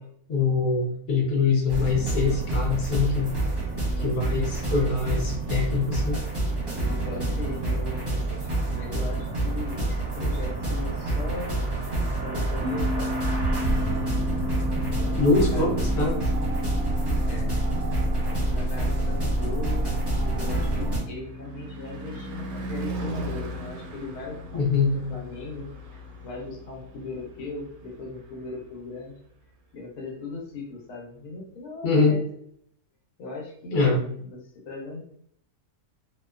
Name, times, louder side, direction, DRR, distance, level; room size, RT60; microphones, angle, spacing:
voice 1, 0.3-3.3 4.0-6.2 15.2-16.2 24.5-24.9 31.8-32.2 33.7-34.0, left 4 dB, 50° left, -1 dB, 0.9 m, -23 dB
sound 1, 1.7-21.0, right 2 dB, 20° right, 0.7 m, -27 dB
voice 2, 3.8-4.2 7.0-11.6 12.2-13.2 15.0-16.1 17.2-17.6 18.3-29.1 29.7-32.2 33.2-35.1, left 3 dB, 85° left, -1 dB, 1.2 m, -38 dB
sound 2, 12.6-25.4, left 2 dB, 65° right, 0.6 m, -37 dB
Car passing by / Truck / Engine, 19.6-29.1, right 1 dB, 80° right, 1.1 m, -39 dB
2.7 x 2.1 x 2.3 m, 0.67 s
omnidirectional pair, 1.6 m